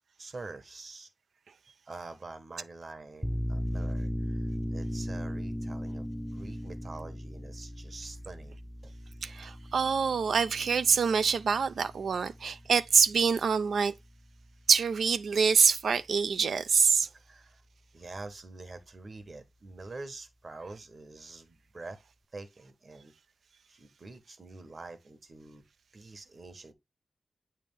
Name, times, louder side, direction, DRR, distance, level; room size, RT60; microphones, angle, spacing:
voice 1, 0.2-1.1 1.9-8.9 17.1-17.6 17.9-22.0 22.3-23.1 23.7-25.7 25.9-26.7, right 3 dB, 45° right, 1.2 m, -46 dB
sound 1, 3.2-14.5, equal, ahead, 0.4 m, -37 dB
voice 2, 9.2-13.9 14.7-17.1, right 6 dB, 90° right, 0.5 m, -25 dB
8.5 x 3.4 x 3.5 m
wide cardioid pair, 105°, 0 cm